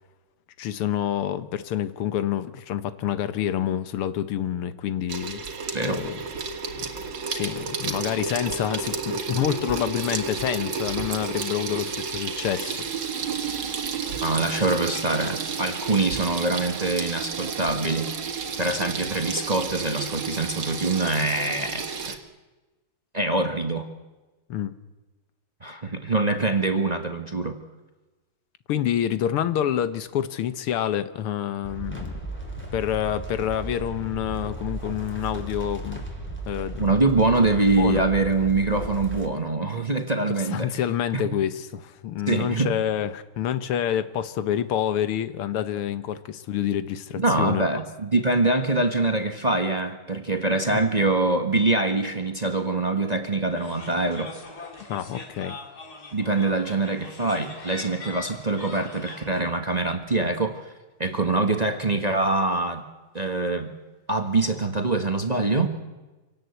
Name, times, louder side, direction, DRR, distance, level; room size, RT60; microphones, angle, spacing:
voice 1, 0.6-5.4 5.8-6.2 7.3-12.8 24.5-24.7 28.7-32.1 32.7-36.0 36.5-36.9 37.8-38.0 40.5-47.8 50.7-50.9 54.9-55.6, left 10 dB, 85° left, 13 dB, 1.9 m, -27 dB
Water tap faucet / Sink (filling or washing), 5.1-22.2, right 5 dB, 60° right, 2.3 m, -31 dB
voice 2, 14.2-18.1 18.6-22.2 23.1-23.9 25.6-27.6 36.8-40.7 42.3-42.7 47.2-54.3 56.1-60.6 61.0-62.8 63.1-63.7 64.1-65.7, right 2 dB, 25° right, 6 dB, 1.2 m, -24 dB
sound 1, 31.6-39.3, right 2 dB, 5° left, 3.3 m, -35 dB
sound 2, 53.6-59.3, left 3 dB, 45° left, 3.3 m, -42 dB
26.5 x 18.0 x 8.1 m, 1.2 s
omnidirectional pair, 2.4 m